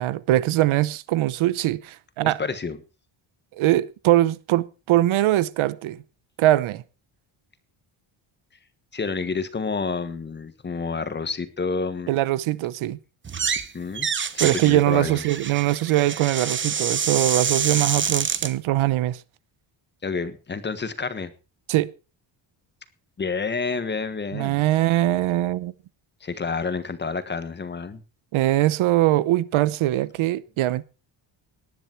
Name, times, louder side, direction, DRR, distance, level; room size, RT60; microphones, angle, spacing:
voice 1, 0.0-2.4 3.6-6.0 6.4-6.8 12.1-13.0 14.4-19.2 21.7-21.9 24.3-25.7 28.3-30.8, right 15 dB, 75° right, 0.9 m, -22 dB
voice 2, 2.2-2.8 8.9-12.1 13.7-14.1 14.3-15.2 20.0-21.3 23.2-24.6 26.2-28.0, left 4 dB, 20° left, 1.4 m, -29 dB
sound 1, 13.2-13.7 13.9-18.5, right 6 dB, 25° right, 0.9 m, -27 dB
19.0 x 10.5 x 4.5 m
cardioid pair, 170°, 49 cm